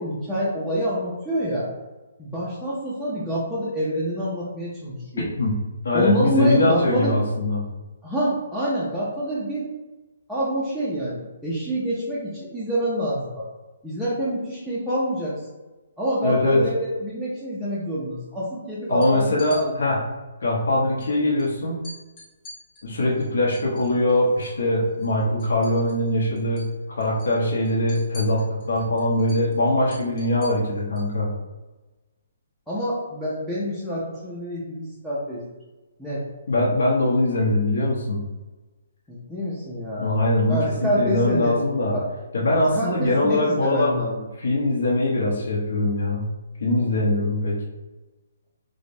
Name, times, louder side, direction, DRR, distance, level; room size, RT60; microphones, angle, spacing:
voice 1, 0.0-1.7 2.2-5.3 5.9-7.1 8.0-9.7 10.3-13.5 13.8-15.3 16.0-16.7 17.0-19.9 32.7-35.4 36.0-36.2 39.1-40.1 40.5-41.5 41.9-42.0 42.7-44.3, equal, ahead, -11 dB, 0.4 m, -27 dB
voice 2, 5.8-7.6 16.2-16.6 18.9-20.0 20.4-21.8 22.8-26.6 27.0-31.3 36.5-38.2 40.0-41.9 42.3-43.9 44.4-46.3 46.6-47.6, left 1 dB, 70° left, -5 dB, 0.8 m, -22 dB
sound 1, 18.9-19.6 21.0-21.1 21.4-21.5 21.8-24.6 24.9-26.1 26.4-26.7 27.0-31.1, left 1 dB, 20° left, 0.9 m, -45 dB
4.9 x 2.0 x 2.6 m, 1.2 s
hypercardioid pair, 175°, 0 cm